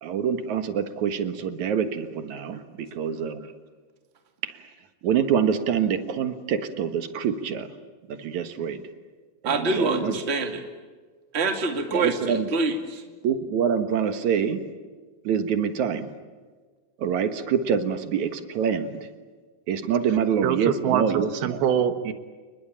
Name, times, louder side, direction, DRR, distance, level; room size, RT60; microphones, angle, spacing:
voice 1, 0.0-2.6 2.9-3.4 4.4-4.5 5.0-7.7 8.1-8.8 9.4-10.1 11.9-12.5 13.2-14.6 15.2-16.1 17.0-19.1 19.7-21.6, right 7 dB, 60° right, 9 dB, 2.6 m, -25 dB
voice 2, 9.4-10.6 11.3-13.0, right 3 dB, 20° right, 5 dB, 2.1 m, -25 dB
voice 3, 20.4-22.1, right 9 dB, 90° right, 9 dB, 3.3 m, -24 dB
30.0 x 21.0 x 8.8 m, 1.4 s
omnidirectional pair, 4.3 m